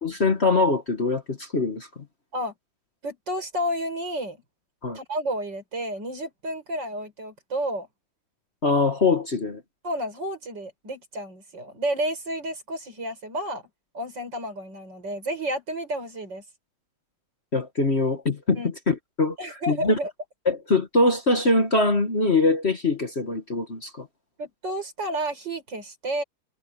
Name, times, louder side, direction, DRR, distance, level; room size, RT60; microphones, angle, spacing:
voice 1, 0.0-2.0 4.8-5.0 8.6-9.6 17.5-19.4 19.7-20.0 20.4-24.1, left 3 dB, 35° left, 1.6 m, -23 dB
voice 2, 3.0-4.4 4.9-7.9 9.8-13.6 13.9-16.4 18.5-18.7 19.4-20.1 24.4-26.2, right 1 dB, 55° right, 7.7 m, -31 dB
omnidirectional pair, 2.4 m